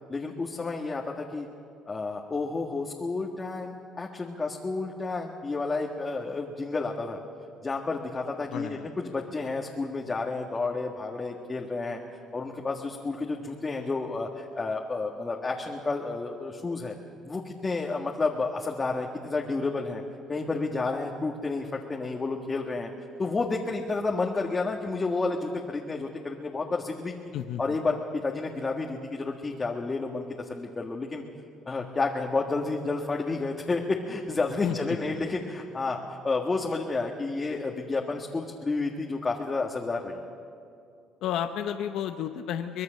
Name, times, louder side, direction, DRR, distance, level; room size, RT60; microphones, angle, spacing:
voice 1, 0.1-1.5 1.9-7.2 7.6-12.0 12.3-16.9 17.3-20.0 20.3-22.9 23.2-27.1 27.6-31.2 31.6-40.2, left 3 dB, 25° left, 0 dB, 1.8 m, -30 dB
voice 2, 8.5-8.9 27.3-27.8 34.6-34.8 41.2-42.8, left 10 dB, 75° left, 7 dB, 0.8 m, -32 dB
24.0 x 20.0 x 6.6 m, 2.4 s
cardioid pair, 95°, 0 cm